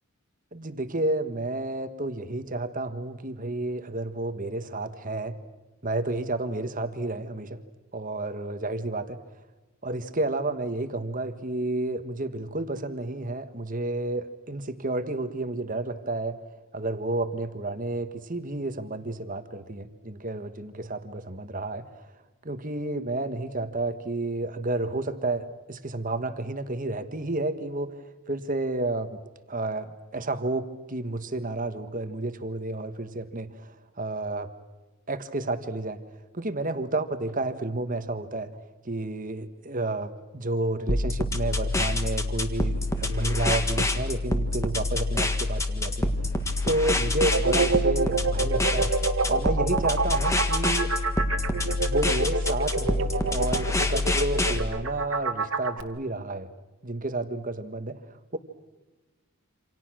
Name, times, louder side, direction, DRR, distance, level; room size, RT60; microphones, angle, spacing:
voice 1, 0.5-5.4 5.8-7.6 7.9-9.2 9.8-16.4 16.7-21.8 22.4-28.0 28.3-29.2 29.5-34.5 35.1-36.0 36.3-38.5 38.8-49.0 49.3-50.9 51.8-56.5 56.8-58.4, right 2 dB, 35° right, 9 dB, 1.6 m, -31 dB
sound 1, 40.9-54.6, left 2 dB, 15° left, 1.7 m, -27 dB
sound 2, 47.3-55.8, right 4 dB, 60° right, 2.0 m, -27 dB
28.5 x 27.0 x 6.3 m, 1.2 s
head